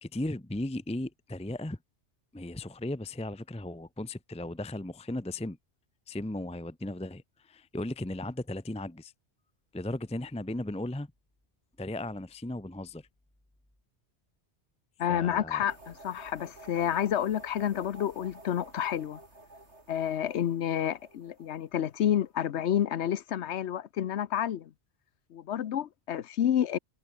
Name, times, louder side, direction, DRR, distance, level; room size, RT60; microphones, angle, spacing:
voice 1, 0.0-1.8 2.3-5.6 6.1-9.1 9.7-11.1 11.8-13.1 15.1-15.6, left 1 dB, 5° left, 0.8 m, -36 dB
voice 2, 15.0-19.2 19.9-24.7 25.3-26.8, left 10 dB, 80° left, 1.0 m, -29 dB
sound 1, 15.7-22.6, right 2 dB, 80° right, 6.1 m, -52 dB
omnidirectional pair, 1.1 m